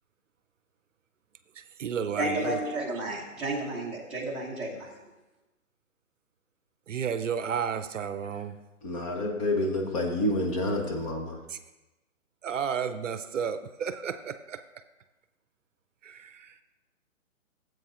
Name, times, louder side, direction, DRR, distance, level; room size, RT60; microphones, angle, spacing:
voice 1, 1.6-2.6 6.9-8.6 11.5-11.6 12.4-14.6 16.0-16.6, right 7 dB, 65° right, 10 dB, 0.6 m, -32 dB
voice 2, 2.2-5.0, right 1 dB, ahead, -8 dB, 1.1 m, -32 dB
voice 3, 8.8-11.4, left 1 dB, 25° left, 2 dB, 0.9 m, -28 dB
15.0 x 7.9 x 2.5 m, 1.1 s
hypercardioid pair, 150°, 41 cm